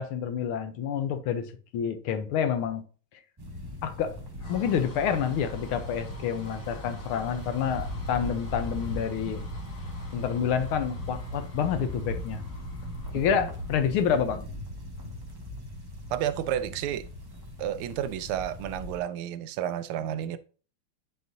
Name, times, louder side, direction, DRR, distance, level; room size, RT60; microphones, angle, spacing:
voice 1, 0.0-2.8 3.8-4.2 4.5-9.5 10.1-12.4 13.1-14.5, left 8 dB, 85° left, 1.6 m, -28 dB
sound 1, 3.4-19.0, left 1 dB, 15° right, 1.1 m, -39 dB
sound 2, 3.9-14.4, left 1 dB, 40° left, 1.8 m, -47 dB
voice 2, 16.1-17.0 17.6-20.4, right 10 dB, 85° right, 1.5 m, -31 dB
9.5 x 4.0 x 2.7 m
omnidirectional pair, 2.3 m